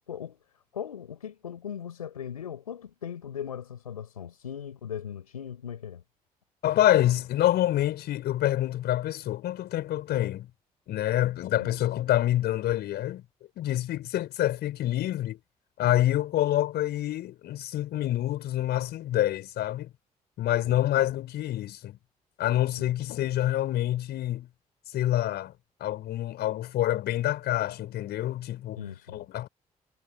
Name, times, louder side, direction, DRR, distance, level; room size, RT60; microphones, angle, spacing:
voice 1, 0.1-0.4 0.7-6.0 11.6-11.7 20.6-20.8 22.8-22.9 28.8-29.2, left 8 dB, 85° left, 4.1 m, -38 dB
voice 2, 6.6-10.5 10.9-13.2 13.6-15.4 15.8-19.9 20.4-22.0 22.4-24.5 24.9-25.5 25.8-28.8 29.1-29.5, left 13 dB, 65° left, 5.2 m, -27 dB
figure-of-eight pair, 40°, 19 cm